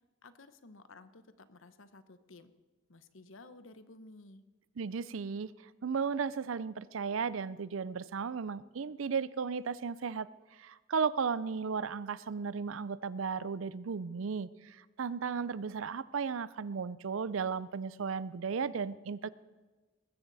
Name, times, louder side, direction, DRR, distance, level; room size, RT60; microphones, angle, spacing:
voice 1, 0.2-2.5 2.9-4.4, left 2 dB, 80° left, 12 dB, 1.0 m, -54 dB
voice 2, 4.8-5.5 5.8-10.3 10.6-19.3, right 5 dB, 80° right, 18 dB, 0.5 m, -35 dB
20.0 x 15.0 x 4.1 m, 1.3 s
head